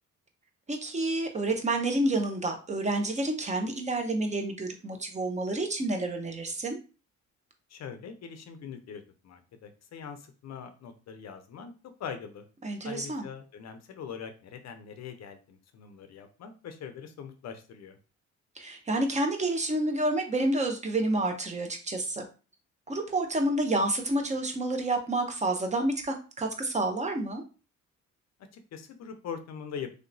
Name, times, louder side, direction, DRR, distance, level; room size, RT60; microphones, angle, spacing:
voice 1, 0.7-6.8 12.6-13.3 18.6-22.2 22.9-27.4, right 2 dB, 25° right, 4 dB, 0.8 m, -29 dB
voice 2, 7.7-11.7 12.0-12.4 12.8-18.0 28.5-29.9, left 7 dB, 60° left, 7 dB, 0.6 m, -42 dB
3.2 x 2.8 x 2.6 m, 0.34 s
cardioid pair, 90°, 30 cm